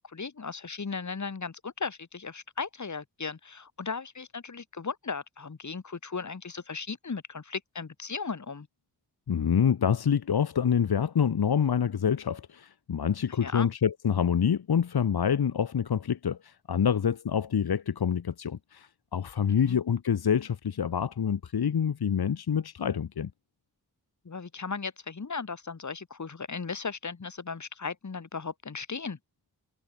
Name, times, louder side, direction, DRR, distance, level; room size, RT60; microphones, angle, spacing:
voice 1, 0.0-8.7 13.3-13.7 19.5-19.8 24.2-29.2, left 5 dB, 45° left, 2.2 m, -36 dB
voice 2, 9.3-23.3, left 7 dB, 70° left, 1.1 m, -27 dB
wide cardioid pair, 85°, 38 cm